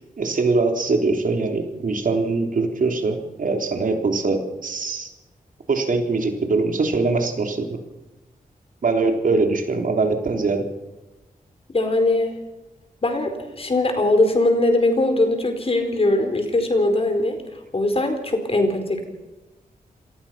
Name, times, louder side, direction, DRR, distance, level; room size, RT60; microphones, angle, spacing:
voice 1, 0.2-5.1 5.7-7.8 8.8-10.7, right 3 dB, 65° right, 4 dB, 3.6 m, -22 dB
voice 2, 11.7-12.3 13.0-17.4 17.7-19.0, left 2 dB, 40° left, 6 dB, 4.5 m, -20 dB
27.5 x 18.5 x 5.8 m, 1.1 s
wide cardioid pair, 120°, 15 cm